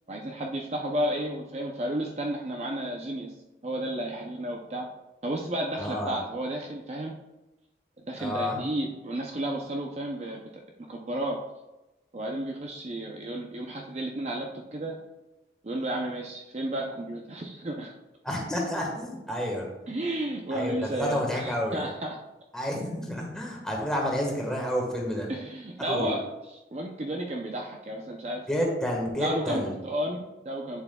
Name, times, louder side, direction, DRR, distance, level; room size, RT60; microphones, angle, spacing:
voice 1, 0.1-3.3 3.6-4.9 5.2-7.1 8.0-10.4 10.9-11.4 12.1-14.9 15.6-17.9 19.9-22.2 25.3-28.5 29.2-30.8, right 1 dB, 40° right, 1 dB, 0.6 m, -32 dB
voice 2, 5.8-6.2 8.2-8.6 18.2-19.7 20.5-21.8 22.5-25.3 25.8-26.1 28.5-29.7, left 1 dB, 5° left, -1 dB, 1.4 m, -30 dB
8.2 x 7.1 x 2.3 m, 1.0 s
head